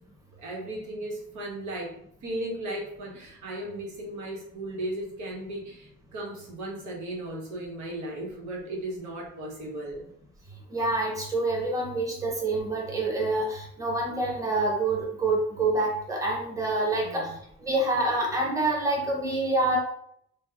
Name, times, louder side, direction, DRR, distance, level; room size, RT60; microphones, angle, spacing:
voice 1, 0.4-10.0 17.0-17.4, right 1 dB, 80° right, -2 dB, 1.0 m, -36 dB
voice 2, 10.7-17.3 17.6-19.8, right 2 dB, 10° right, -2 dB, 1.0 m, -27 dB
2.8 x 2.1 x 3.5 m, 0.72 s
cardioid pair, 90°, 29 cm